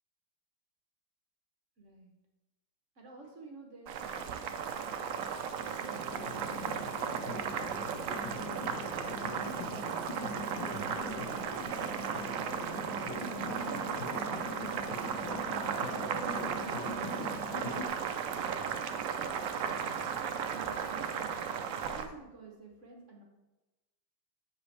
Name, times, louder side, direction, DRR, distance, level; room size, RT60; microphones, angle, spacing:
voice 1, 1.8-2.1 3.0-4.5 5.5-6.8 7.2-12.6 13.2-15.2 16.3-18.9 19.6-20.1 20.5-23.2, right 3 dB, 50° right, 1 dB, 1.1 m, -51 dB
Boiling, 3.9-22.1, right 7 dB, 70° right, 0.8 m, -36 dB
sound 1, 5.9-17.9, left 1 dB, 85° left, 1.8 m, -41 dB
8.0 x 7.0 x 3.3 m, 1.1 s
omnidirectional pair, 2.0 m